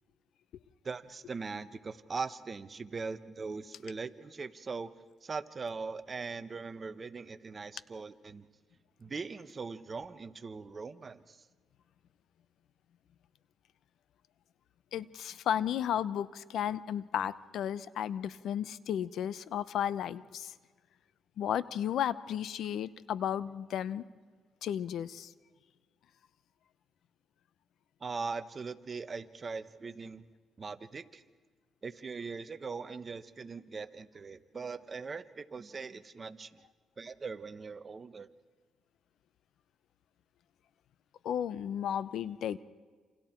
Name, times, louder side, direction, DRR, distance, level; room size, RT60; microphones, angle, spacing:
voice 1, 0.8-4.9 5.2-8.4 9.0-11.4 28.0-30.2 30.6-31.2 31.8-36.6 37.0-38.3, right 4 dB, 35° right, 12 dB, 1.1 m, -40 dB
voice 2, 14.9-20.5 21.4-24.0 24.6-25.3 41.2-42.6, left 9 dB, 75° left, 17 dB, 0.8 m, -34 dB
28.5 x 28.0 x 4.5 m, 1.5 s
cardioid pair, 90°, 0 cm